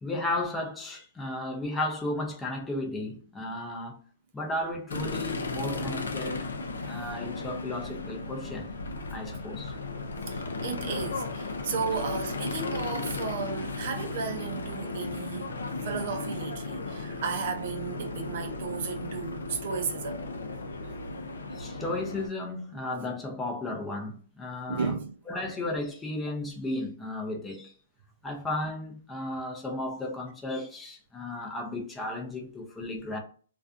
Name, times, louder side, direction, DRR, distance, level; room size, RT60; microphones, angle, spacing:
voice 1, 0.0-4.0 4.3-6.5 6.8-8.7 9.1-9.7 21.5-25.0 25.3-27.7 28.2-33.2, left 2 dB, 10° left, 0.5 m, -34 dB
sound 1, 4.9-22.3, left 3 dB, 85° left, 0.5 m, -35 dB
voice 2, 10.3-15.5 15.8-20.2 20.8-21.0 24.7-25.2, right 6 dB, 55° right, 0.5 m, -34 dB
2.4 x 2.3 x 2.4 m
hypercardioid pair, 140°, 0 cm